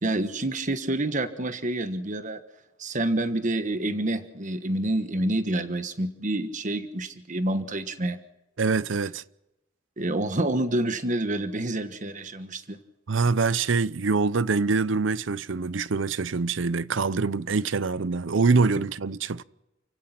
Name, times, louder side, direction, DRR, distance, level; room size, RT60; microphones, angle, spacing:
voice 1, 0.0-2.4 2.8-8.2 10.0-12.8, right 1 dB, 40° right, 1.3 m, -28 dB
voice 2, 8.6-9.2 13.1-19.4, right 4 dB, 75° right, 0.7 m, -24 dB
29.5 x 16.0 x 5.9 m
head